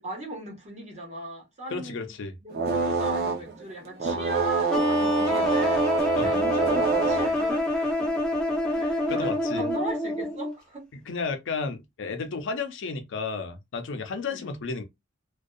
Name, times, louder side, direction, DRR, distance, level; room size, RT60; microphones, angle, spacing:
voice 1, 0.0-2.1 2.4-8.2 8.7-10.8 14.3-14.4, right 1 dB, 35° right, 1.1 m, -38 dB
voice 2, 1.7-2.3 6.2-6.3 8.7-8.8 9.1-9.7 10.9-14.8, left 4 dB, 60° left, 0.5 m, -32 dB
sound 1, 2.5-3.6 4.0-7.5, right 6 dB, 50° right, 0.6 m, -27 dB
sound 2, 4.7-10.5, left 1 dB, 5° left, 0.7 m, -26 dB
2.5 x 2.2 x 2.3 m
head